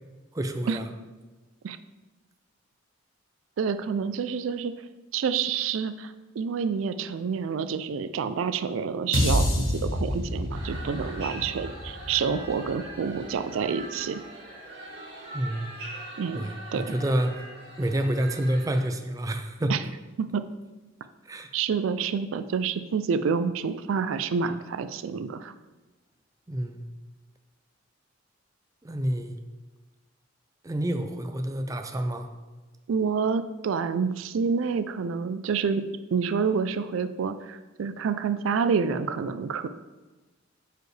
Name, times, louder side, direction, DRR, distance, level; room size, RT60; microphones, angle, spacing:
voice 1, 0.3-0.9 15.3-15.8 16.3-17.4 17.8-19.8 21.3-21.5 26.5-26.8 28.8-29.4 30.6-32.3, right 1 dB, 15° right, 6 dB, 0.5 m, -28 dB
voice 2, 3.6-4.7 5.1-14.2 16.2-16.4 16.7-16.8 19.7-19.8 20.2-20.4 21.5-25.5 32.9-35.8 36.1-39.7, right 6 dB, 90° right, 12 dB, 0.4 m, -28 dB
sound 1, 9.1-13.5, left 1 dB, 75° left, 1.1 m, -28 dB
sound 2, 10.5-18.8, right 2 dB, 60° right, 2.3 m, -42 dB
9.2 x 4.9 x 3.3 m, 1.2 s
head